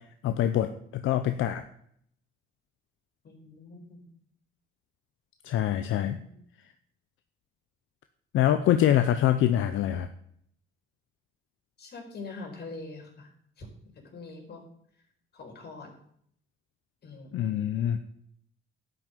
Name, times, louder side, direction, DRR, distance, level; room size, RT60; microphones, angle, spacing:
voice 1, 0.0-1.7 5.4-6.2 8.3-10.1 17.3-18.0, left 11 dB, 85° left, 9 dB, 0.8 m, -25 dB
voice 2, 3.2-4.0 6.1-6.4 11.8-13.3 13.6-13.7 13.9-14.6 15.3-15.9 17.0-17.4, left 3 dB, 55° left, 1 dB, 4.7 m, -43 dB
12.0 x 6.3 x 9.1 m, 0.67 s
cardioid pair, 90°, 20 cm